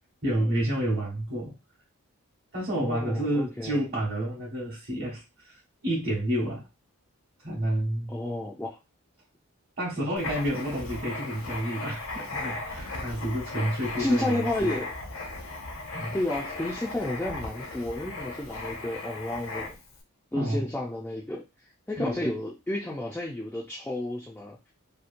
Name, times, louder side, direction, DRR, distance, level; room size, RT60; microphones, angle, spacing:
voice 1, 0.2-1.5 2.5-6.7 7.4-8.2 9.8-14.7 15.9-16.2 20.3-20.7 22.0-22.2, right 1 dB, 45° right, -6 dB, 1.0 m, -30 dB
voice 2, 2.8-3.8 8.1-8.8 14.0-14.9 16.1-19.7 20.3-21.4 21.9-24.7, left 1 dB, 10° left, -3 dB, 0.3 m, -31 dB
Writing, 10.2-20.0, left 3 dB, 60° left, 0.6 m, -37 dB
2.8 x 2.1 x 2.5 m, 0.26 s
head